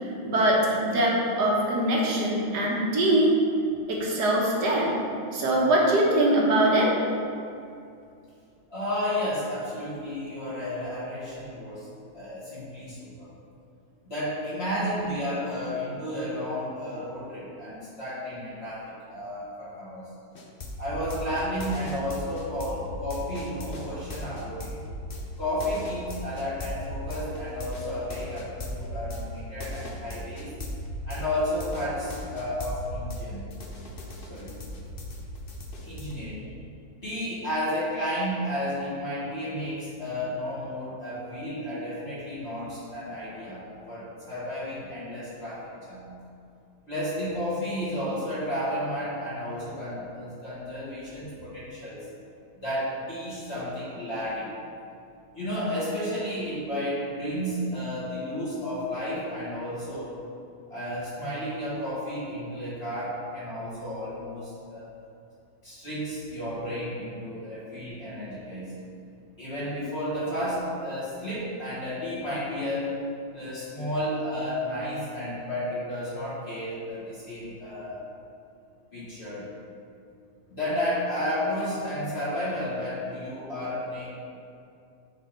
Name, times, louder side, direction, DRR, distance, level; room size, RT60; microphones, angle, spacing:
voice 1, 0.2-3.3 3.9-4.9 5.3-6.9, right 1 dB, 55° right, -3 dB, 1.6 m, -22 dB
voice 2, 8.7-11.9 12.1-13.3 14.0-20.0 20.8-24.7 25.4-30.5 31.0-33.5 34.3-34.6 35.8-36.5 37.0-46.1 46.9-52.1 52.5-54.5 55.3-60.1 60.7-64.9 65.6-68.7 69.4-73.0 73.3-78.0 78.9-79.5 80.5-84.2, equal, 30° left, -10 dB, 2.1 m, -32 dB
sound 1, 20.3-33.2 33.5-36.1, left 1 dB, 90° left, 0.5 m, -37 dB
9.3 x 4.1 x 4.3 m, 2.5 s
omnidirectional pair, 2.3 m